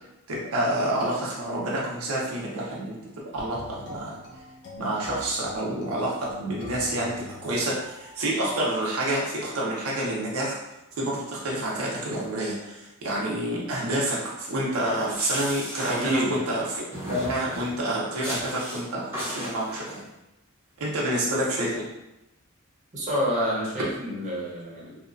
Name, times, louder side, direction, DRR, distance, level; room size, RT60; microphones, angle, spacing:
voice 1, 0.3-3.0 3.3-4.2 4.8-10.6 11.0-20.0 20.8-21.9, right 1 dB, 80° right, -4 dB, 0.6 m, -28 dB
sound 1, 3.5-8.4, left 2 dB, 55° left, 0.5 m, -43 dB
sound 2, 14.9-16.6 16.9-17.7 18.2-18.8 19.1-20.0, equal, 10° right, 0.7 m, -35 dB
voice 2, 15.9-16.3 22.9-25.0, equal, 35° right, -6 dB, 0.8 m, -28 dB
3.0 x 2.1 x 2.4 m, 0.95 s
head